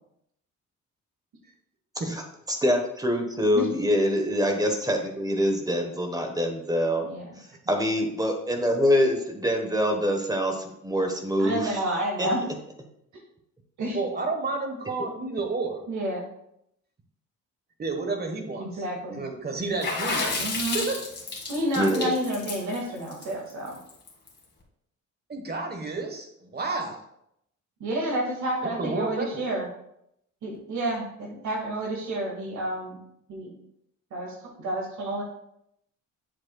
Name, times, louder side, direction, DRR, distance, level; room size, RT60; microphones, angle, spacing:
voice 1, 2.5-7.1 7.4-11.7 12.2-12.3 21.8-22.1, equal, 10° right, 4 dB, 1.1 m, -25 dB
voice 2, 7.0-7.4 11.4-12.4 13.8-14.0 15.9-16.3 18.6-19.2 20.3-20.8 21.5-23.8 27.8-29.7 30.4-33.0 33.3-33.5 34.1-35.2, right 1 dB, 75° right, -1 dB, 2.0 m, -30 dB
voice 3, 13.9-15.8 17.8-18.6 19.2-20.3 20.7-21.0 25.3-27.0 28.6-29.4, right 3 dB, 30° right, 4 dB, 1.3 m, -30 dB
Water / Splash splatter, 19.8-24.3, left 3 dB, 35° left, 1.9 m, -31 dB
7.5 x 7.4 x 2.3 m, 0.77 s
cardioid pair, 90°, 30 cm